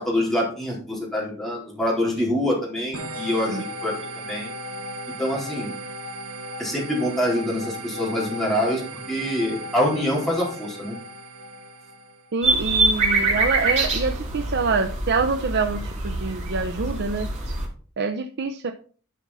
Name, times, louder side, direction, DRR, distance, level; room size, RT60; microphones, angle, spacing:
voice 1, 0.0-4.5 5.2-5.7 6.6-11.0, left 1 dB, ahead, -4 dB, 4.1 m, -25 dB
sound 1, 2.9-12.3, equal, 90° right, 1.2 m, -36 dB
voice 2, 12.3-17.3 18.0-18.7, right 4 dB, 55° right, 7 dB, 0.6 m, -26 dB
sound 2, 12.4-17.7, right 3 dB, 35° right, 3.4 m, -24 dB
12.0 x 6.0 x 4.1 m, 0.42 s
head